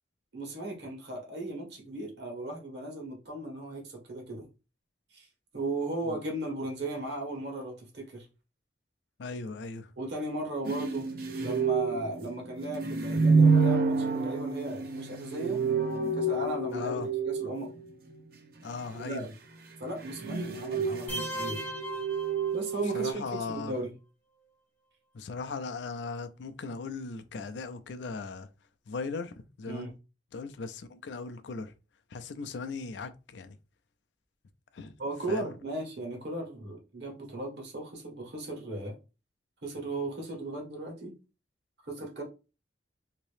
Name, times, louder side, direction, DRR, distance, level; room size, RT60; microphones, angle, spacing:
voice 1, 0.3-4.5 5.1-5.3 5.5-8.3 10.0-11.1 11.4-15.6 16.2-17.0 17.3-17.7 18.9-19.3 19.8-21.6 22.5-23.9 29.7-29.9 35.0-38.9 39.6-41.1 41.8-42.2, right 2 dB, 70° right, 1.3 m, -36 dB
voice 2, 9.2-9.9 16.7-17.1 18.6-19.3 22.9-23.7 25.1-28.5 28.9-29.9 30.3-31.7 32.1-33.6 34.7-35.0 35.3-35.5, left 4 dB, 80° left, 0.4 m, -38 dB
sound 1, 10.6-17.9 19.8-23.1, right 4 dB, 55° right, 0.6 m, -28 dB
sound 2, 21.1-23.0, equal, 10° left, 0.6 m, -38 dB
2.9 x 2.7 x 3.3 m
head